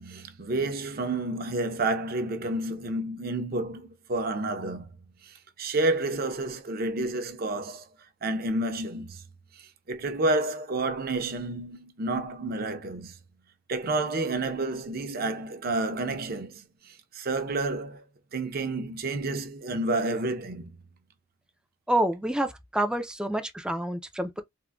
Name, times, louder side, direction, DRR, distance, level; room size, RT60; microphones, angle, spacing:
voice 1, 0.0-3.8 4.1-4.9 5.2-7.9 8.2-9.2 9.6-13.1 13.7-16.6 17.1-18.0 18.3-20.7, right 2 dB, 55° right, 0.6 m, -30 dB
voice 2, 21.9-24.4, right 1 dB, 5° right, 0.3 m, -28 dB
3.6 x 2.1 x 2.2 m
head